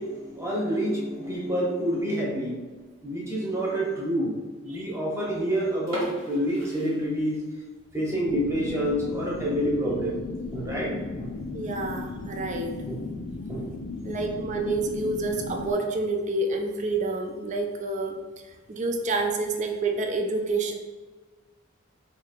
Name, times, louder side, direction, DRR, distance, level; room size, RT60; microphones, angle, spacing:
voice 1, 0.0-2.6 3.0-7.4 7.9-10.2 10.5-11.3 12.9-13.1 13.5-13.7, equal, 15° right, -4 dB, 0.8 m, -28 dB
sound 1, 5.9-7.7 8.0-8.1 8.7-8.9 9.3-9.4 9.6-9.7 10.5-10.8, right 1 dB, 80° right, 1.2 m, -40 dB
sound 2, 8.3-15.7, left 3 dB, 85° left, 0.4 m, -36 dB
voice 2, 11.5-12.8 14.0-18.2 18.7-20.7, right 3 dB, 35° right, 3 dB, 0.4 m, -28 dB
2.8 x 2.4 x 4.2 m, 1.3 s
head